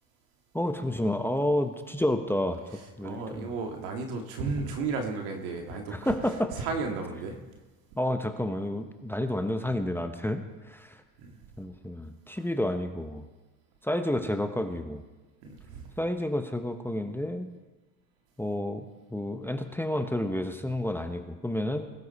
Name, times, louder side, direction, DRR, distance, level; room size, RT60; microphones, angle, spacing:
voice 1, 0.5-3.5 5.9-6.5 8.0-11.0 11.6-13.2 13.8-15.0 16.0-17.5 18.4-18.8 19.1-21.9, left 1 dB, 5° left, 7 dB, 1.0 m, -30 dB
voice 2, 3.0-6.1 6.6-7.4 11.2-11.4 15.4-15.9, right 4 dB, 85° right, 3 dB, 2.2 m, -33 dB
20.5 x 12.0 x 4.3 m, 1.2 s
supercardioid pair, 95°, 46 cm